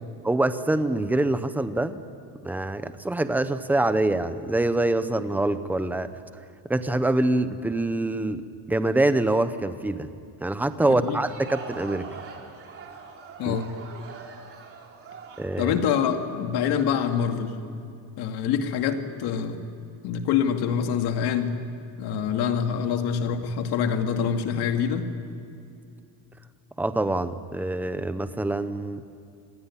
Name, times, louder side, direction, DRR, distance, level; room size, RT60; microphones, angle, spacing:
voice 1, 0.2-2.0 2.4-6.1 6.7-8.4 8.7-10.1 10.4-12.1 13.4-13.6 15.4-15.7 26.8-29.0, right 2 dB, 5° right, 11 dB, 0.6 m, -25 dB
Crowd, 11.1-16.9, right 5 dB, 30° right, 3.3 m, -43 dB
voice 2, 13.4-13.7 15.6-17.6 18.2-19.7 20.0-21.6 22.0-25.1, left 7 dB, 60° left, 5 dB, 2.4 m, -25 dB
27.0 x 20.0 x 9.9 m, 2.6 s
cardioid pair, 180°, 42 cm